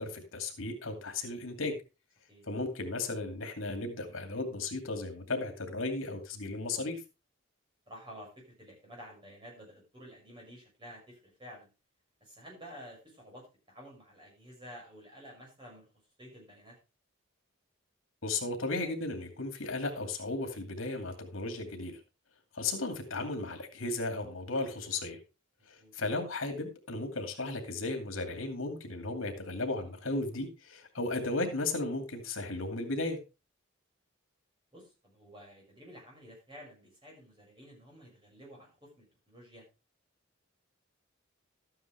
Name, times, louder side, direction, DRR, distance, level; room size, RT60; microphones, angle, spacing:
voice 1, 0.0-1.8 2.5-7.0 18.2-22.0 22.5-25.2 25.7-33.2, left 2 dB, 80° left, 5 dB, 2.5 m, -35 dB
voice 2, 7.9-11.7 12.2-15.9 16.2-16.8 25.8-25.9 34.7-39.6, equal, 25° right, -2 dB, 6.2 m, -51 dB
13.0 x 9.4 x 3.4 m, 0.28 s
head